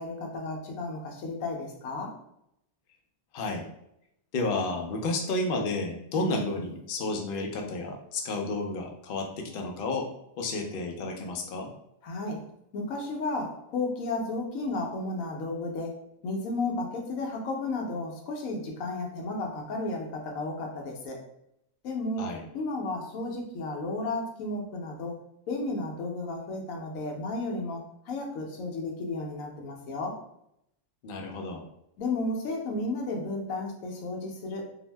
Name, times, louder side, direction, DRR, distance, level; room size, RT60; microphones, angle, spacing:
voice 1, 0.0-2.1 6.2-6.7 12.0-12.4 12.7-16.0 16.2-21.2 21.8-22.2 22.5-25.2 25.5-30.2 32.0-34.7, left 2 dB, 70° left, 1 dB, 1.0 m, -33 dB
voice 2, 3.3-3.7 4.3-10.1 10.4-11.7 22.2-22.4 31.0-31.7, left 2 dB, 85° left, 2 dB, 0.4 m, -31 dB
2.6 x 2.0 x 3.2 m, 0.80 s
omnidirectional pair, 1.5 m